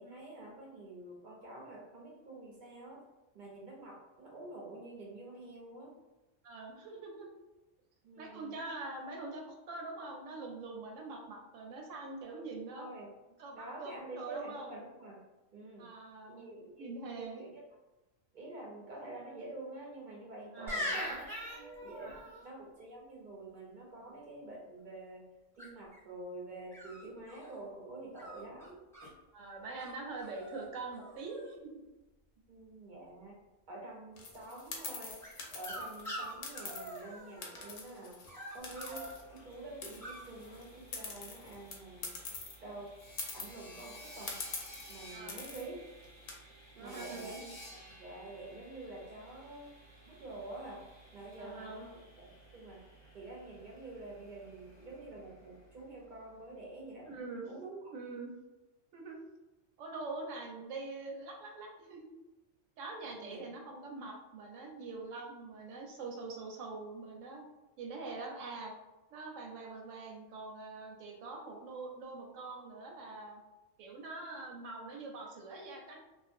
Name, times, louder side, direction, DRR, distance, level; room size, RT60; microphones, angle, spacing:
voice 1, 0.0-3.0 3.3-5.9 8.0-8.6 12.4-13.1 13.5-15.2 15.5-15.9 16.3-17.6 18.3-25.3 25.6-28.8 32.5-33.4 33.7-35.2 35.5-38.2 38.5-42.2 42.6-42.9 43.3-44.4 44.9-45.8 46.7-47.4 47.7-49.7 50.1-50.9 51.1-52.0 52.5-52.8 53.1-57.1 57.5-57.9 63.0-63.5, right 2 dB, 60° right, -2 dB, 0.5 m, -47 dB
voice 2, 6.4-7.3 8.2-12.9 13.4-14.7 15.8-16.4 16.8-17.4 20.5-20.8 22.0-22.2 29.3-31.7 45.1-45.4 46.8-47.6 51.4-51.9 57.1-57.5 57.9-58.3 58.9-59.2 59.8-62.1 62.8-67.4 67.8-68.7 69.1-73.4 73.8-76.0, right 3 dB, 80° right, 1 dB, 0.9 m, -44 dB
sound 1, 20.7-22.4 25.6-26.0 26.7-27.6 28.2-29.1 29.8-29.9 30.2-30.7 30.9-31.5 35.2-37.7 38.3-39.1 40.0-40.2, equal, 5° left, 0.5 m, -42 dB
sound 2, 34.2-37.0 37.4-39.5 39.8-42.6 42.9-43.0 43.2-43.8 44.3-44.9 45.3-45.7 46.0-46.3, left 4 dB, 70° left, 0.8 m, -44 dB
Sawing, 38.6-56.4, right 1 dB, 40° left, 0.9 m, -55 dB
2.5 x 2.0 x 2.5 m, 1.1 s
omnidirectional pair, 1.3 m